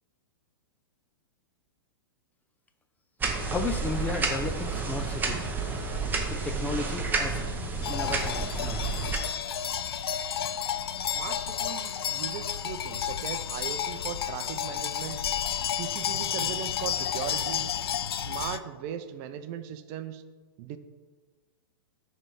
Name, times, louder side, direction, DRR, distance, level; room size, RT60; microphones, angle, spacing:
sound 1, 3.2-9.2, right 4 dB, 15° right, 0.9 m, -30 dB
voice 1, 3.5-5.5 6.3-7.4 7.9-8.8, left 4 dB, 15° left, 7 dB, 0.4 m, -34 dB
Flock of sheep, 7.8-18.6, left 9 dB, 80° left, 0.4 m, -31 dB
voice 2, 11.0-15.2 15.7-17.7 18.1-20.2 20.6-20.8, right 9 dB, 45° right, 11 dB, 0.5 m, -38 dB
9.8 x 3.4 x 4.8 m, 1.4 s
hypercardioid pair, 115°, 13 cm